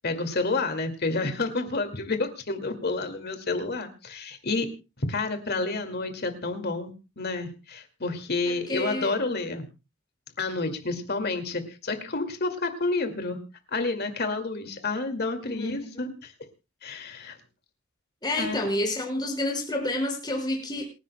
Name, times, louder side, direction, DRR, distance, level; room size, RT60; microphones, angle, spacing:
voice 1, 0.0-4.7 5.0-9.7 10.4-13.4 13.7-16.3 16.8-17.4 18.4-18.7, left 3 dB, 50° left, 7 dB, 2.2 m, -29 dB
voice 2, 8.4-9.1 15.4-16.1 18.2-20.8, left 1 dB, 20° left, 2 dB, 5.2 m, -29 dB
27.5 x 11.0 x 2.2 m, 0.29 s
head